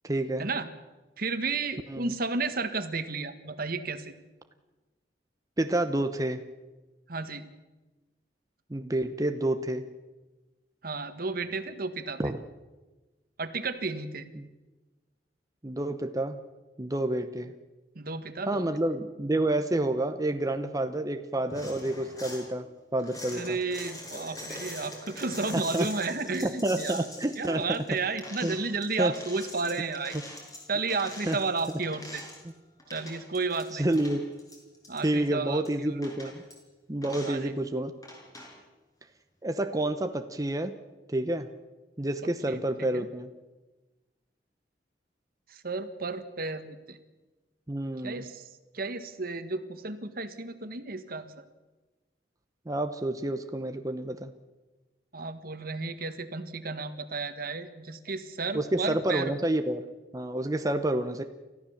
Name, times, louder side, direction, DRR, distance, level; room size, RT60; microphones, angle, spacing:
voice 1, 0.0-0.5 1.9-2.1 5.6-6.4 8.7-9.8 12.2-12.4 14.3-14.5 15.6-16.4 16.8-17.5 18.5-22.7 22.9-23.6 25.5-25.9 26.6-27.8 28.4-28.6 29.0-29.1 31.3-31.4 33.7-34.2 35.0-36.4 36.9-37.9 39.4-40.8 41.1-41.5 42.0-43.3 47.7-48.3 52.7-54.3 58.5-59.8 60.1-61.2, right 1 dB, 20° right, 7 dB, 0.9 m, -29 dB
voice 2, 1.2-4.1 7.1-7.5 10.8-12.2 13.4-14.3 17.9-18.7 23.3-27.1 27.4-30.2 30.7-32.2 32.9-33.9 34.9-36.0 37.2-37.5 42.5-43.1 45.5-47.0 48.0-48.5 48.7-51.4 55.1-59.3, right 3 dB, 55° right, 10 dB, 1.6 m, -33 dB
sound 1, 21.5-22.4 23.0-32.5 32.8-33.7 33.9-35.2 35.6-35.7 36.0-36.5 37.0-37.4 38.0-38.5, left 1 dB, 20° left, 5.9 m, -43 dB
29.5 x 14.5 x 7.2 m, 1.2 s
head